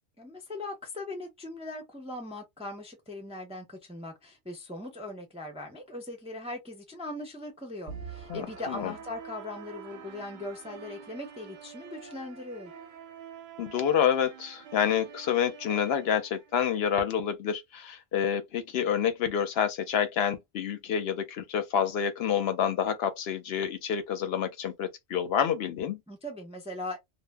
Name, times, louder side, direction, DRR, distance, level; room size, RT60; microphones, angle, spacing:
voice 1, 0.2-12.7 26.1-27.0, left 2 dB, 10° right, 0.4 m, -40 dB
sound 1, 7.9-16.9, right 7 dB, 55° right, 0.6 m, -46 dB
voice 2, 8.3-8.9 13.6-26.0, left 8 dB, 70° left, 0.8 m, -28 dB
2.0 x 2.0 x 3.3 m
omnidirectional pair, 1.1 m